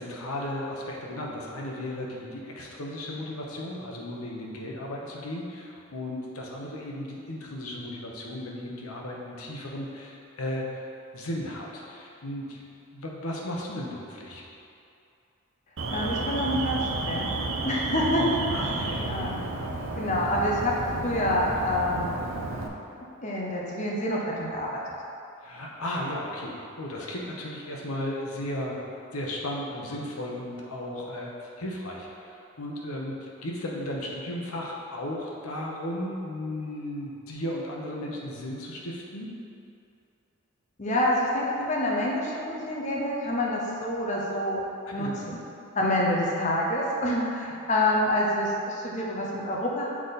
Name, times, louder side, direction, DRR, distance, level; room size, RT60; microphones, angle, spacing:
voice 1, 0.0-10.8 11.1-12.6 12.9-14.4 18.5-19.1 25.4-28.8 29.1-39.3 44.9-45.2, left 1 dB, 85° left, -2 dB, 1.0 m, -35 dB
Alarm, 15.8-22.7, right 2 dB, 65° right, 0.6 m, -32 dB
voice 2, 15.9-17.3 17.6-19.4 20.0-20.7 21.0-22.1 23.2-24.8 40.8-44.6 44.9-45.4 45.8-49.9, left 1 dB, 35° left, -3 dB, 0.8 m, -27 dB
7.4 x 3.9 x 4.1 m, 2.6 s
head